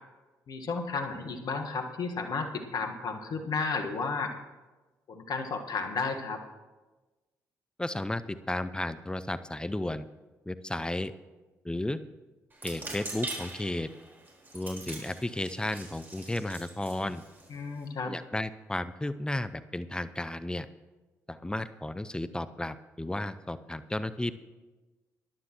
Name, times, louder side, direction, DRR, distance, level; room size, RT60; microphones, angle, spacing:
voice 1, 0.5-4.3 5.1-6.4 17.5-18.1, left 4 dB, 55° left, 5 dB, 1.5 m, -33 dB
voice 2, 7.8-10.1 10.5-11.1 11.6-12.0 12.6-13.9 14.5-17.2 18.0-20.7 21.3-24.3, left 1 dB, 10° left, 13 dB, 0.6 m, -33 dB
sound 1, 12.5-17.9, right 2 dB, 25° right, 4.4 m, -43 dB
19.0 x 11.0 x 3.0 m, 1.2 s
hypercardioid pair, 45°, 8 cm